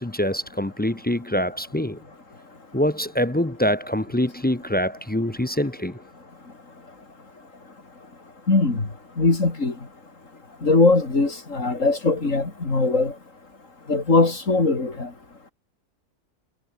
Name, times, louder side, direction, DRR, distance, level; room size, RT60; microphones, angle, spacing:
voice 1, 0.0-2.0 2.7-6.0, equal, 10° left, 0.4 m, -24 dB
voice 2, 8.5-8.9 9.2-9.7 10.6-13.1 13.9-15.1, left 3 dB, 70° left, 3.9 m, -20 dB
omnidirectional pair, 1.4 m